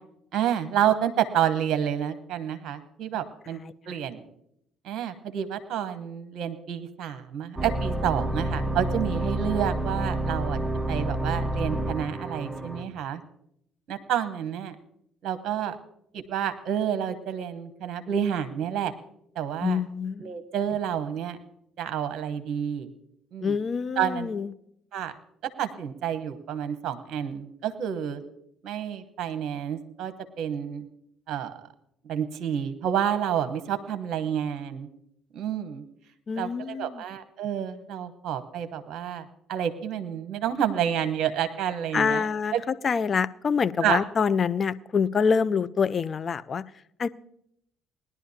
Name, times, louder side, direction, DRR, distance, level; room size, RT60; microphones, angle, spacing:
voice 1, 0.3-3.6 3.9-4.3 4.8-10.6 10.9-13.2 13.9-14.7 15.2-15.8 16.1-18.9 19.4-19.8 20.2-21.4 21.8-22.9 23.3-23.6 24.0-24.3 24.9-25.1 25.6-28.2 28.6-30.8 31.3-31.6 32.0-34.9 35.3-35.8 36.4-42.3 42.5-42.6 43.8-44.0, right 9 dB, 60° right, 10 dB, 1.0 m, -29 dB
sound 1, 7.6-12.8, right 1 dB, ahead, 1.0 m, -29 dB
voice 2, 19.6-20.4 23.4-24.5 36.3-37.0 41.9-42.5 42.8-46.6 47.0-47.1, left 6 dB, 45° left, 15 dB, 0.5 m, -26 dB
20.0 x 11.0 x 2.8 m, 0.73 s
hypercardioid pair, 55°, 0 cm